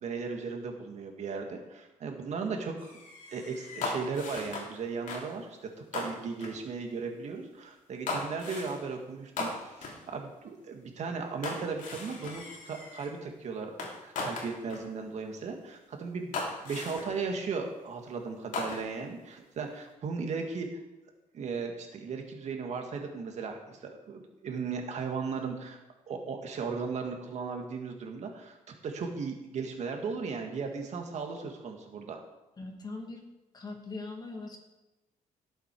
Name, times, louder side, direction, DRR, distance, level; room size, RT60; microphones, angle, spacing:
voice 1, 0.0-3.0 3.3-16.4 16.6-20.7 21.3-28.6 28.8-32.2, right 5 dB, 55° right, 3 dB, 2.1 m, -36 dB
sound 1, 2.8-4.8 5.1-5.3 5.9-6.6 8.1-8.8 9.4-10.0 11.4-13.1 13.8-14.9 15.6-15.7 16.3-17.2 18.5-19.1, left 3 dB, 70° left, 3.0 m, -38 dB
voice 2, 32.6-33.2 33.5-34.6, left 3 dB, 30° left, 2 dB, 2.0 m, -40 dB
18.0 x 8.0 x 4.9 m, 1.0 s
cardioid pair, 155°, 14 cm